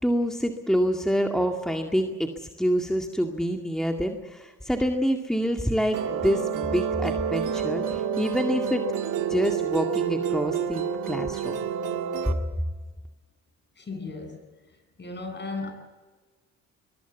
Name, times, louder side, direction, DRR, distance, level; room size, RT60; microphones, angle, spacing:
voice 1, 0.0-8.9 9.3-11.6, equal, ahead, 3 dB, 2.1 m, -26 dB
Musical instrument, 5.9-12.3, right 8 dB, 85° right, 2.2 m, -28 dB
voice 2, 13.8-14.4 14.7-15.7, left 3 dB, 35° left, 6 dB, 7.6 m, -36 dB
22.5 x 22.0 x 8.3 m, 1.3 s
cardioid pair, 90°, 30 cm